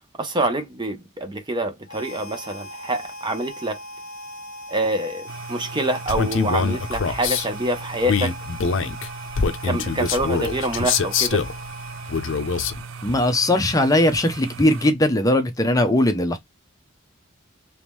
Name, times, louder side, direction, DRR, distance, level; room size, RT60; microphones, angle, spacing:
voice 1, 0.2-3.8 4.7-8.3 9.6-11.4, right 1 dB, 20° right, 0.6 m, -26 dB
Harmonica, 1.9-12.9, equal, 45° left, 1.3 m, -40 dB
sound 1, 5.3-14.9, right 5 dB, 75° right, 0.5 m, -38 dB
Male speech man speaking, 6.1-7.5 8.0-11.6 12.1-12.8, left 5 dB, 65° left, 0.6 m, -24 dB
voice 2, 13.0-16.4, left 1 dB, 15° left, 0.6 m, -19 dB
3.6 x 3.0 x 3.0 m
head